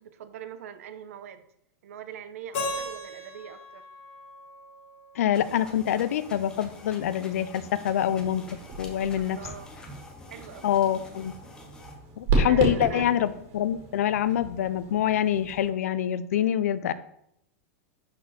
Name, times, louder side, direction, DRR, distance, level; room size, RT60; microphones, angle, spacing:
voice 1, 0.0-1.5 1.8-3.8 9.1-9.7 10.3-10.7 12.3-13.1, right 9 dB, 70° right, 10 dB, 0.9 m, -43 dB
Keyboard (musical), 2.5-5.5, left 2 dB, 50° left, 3.6 m, -37 dB
voice 2, 5.2-8.4 8.8-9.4 10.6-11.3 12.2-16.9, left 10 dB, 75° left, 15 dB, 0.6 m, -25 dB
sound 1, 5.3-11.9, left 3 dB, 10° left, 0.8 m, -48 dB
sound 2, 8.0-15.7, right 3 dB, 35° right, 2.0 m, -33 dB
11.5 x 4.3 x 4.2 m, 0.76 s
supercardioid pair, 175°, 8 cm